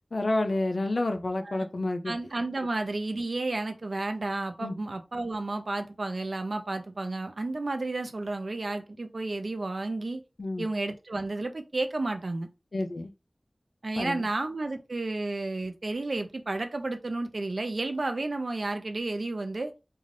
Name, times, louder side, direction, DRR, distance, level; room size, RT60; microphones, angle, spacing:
voice 1, 0.0-2.1 4.6-4.8 10.4-10.7 12.7-13.1 14.0-14.3, left 2 dB, 90° left, 0.3 m, -29 dB
voice 2, 2.1-10.2 10.6-12.5 13.8-19.7, right 2 dB, 80° right, 0.4 m, -32 dB
2.5 x 2.3 x 3.2 m
wide cardioid pair, 55°, 0 cm